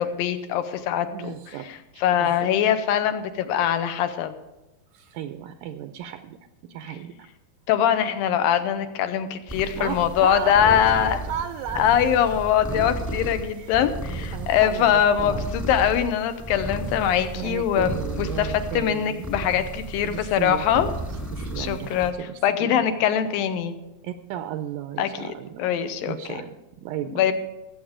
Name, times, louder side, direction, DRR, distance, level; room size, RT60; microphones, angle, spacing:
voice 1, 0.0-1.3 2.0-4.3 7.7-11.2 11.8-20.9 21.6-22.1 22.4-23.7 25.0-25.3 25.6-26.4 27.1-27.3, left 9 dB, 90° left, 9 dB, 2.5 m, -22 dB
voice 2, 1.1-2.5 4.9-6.4 6.6-7.1 9.7-11.9 12.5-12.6 13.6-13.8 14.1-15.5 17.3-19.3 20.0-21.0 21.3-22.9 24.0-27.3, right 10 dB, 80° right, 8 dB, 2.1 m, -35 dB
sound 1, 9.5-22.1, right 1 dB, 10° left, 0.8 m, -34 dB
19.5 x 8.1 x 4.9 m, 1.0 s
omnidirectional pair, 4.1 m